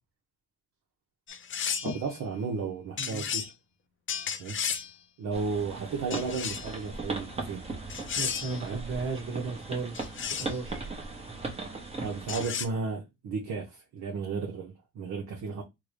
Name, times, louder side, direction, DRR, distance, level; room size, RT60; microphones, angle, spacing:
sound 1, 1.3-2.0 3.0-3.5 4.1-4.9 6.1-6.8 7.9-8.6 9.9-10.6 12.3-12.7, left 7 dB, 40° left, 0.5 m, -33 dB
voice 1, 1.8-3.5 4.4-4.6 5.2-7.6 8.6-8.8 12.0-15.6, right 4 dB, 65° right, 0.9 m, -34 dB
sound 2, 5.3-12.5, right 3 dB, 20° right, 1.0 m, -38 dB
voice 2, 8.2-10.9, right 4 dB, 45° right, 1.3 m, -35 dB
3.6 x 2.3 x 3.2 m
cardioid pair, 90°, 30 cm